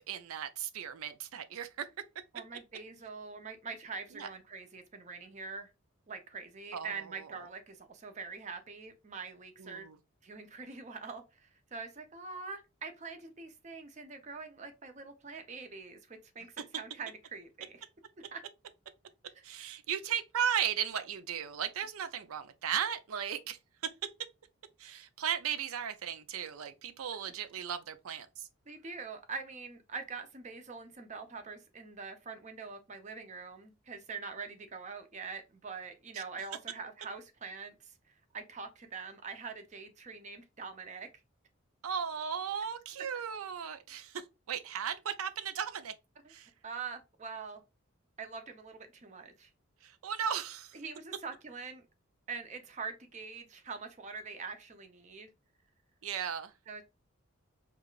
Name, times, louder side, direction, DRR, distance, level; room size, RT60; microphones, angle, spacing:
voice 1, 0.0-1.9 4.1-4.3 6.7-7.3 9.6-10.0 19.4-23.6 23.8-23.9 24.8-28.5 36.1-36.2 41.8-45.9 46.3-46.5 49.8-50.8 56.0-56.5, right 8 dB, 85° right, 0.5 m, -36 dB
voice 2, 2.3-5.7 6.1-9.9 10.2-17.8 18.3-18.4 19.4-19.5 28.7-41.1 46.6-47.6 48.2-49.5 50.7-51.8 52.3-55.3 56.7-56.8, right 4 dB, 35° right, 0.6 m, -44 dB
4.7 x 2.4 x 2.3 m
head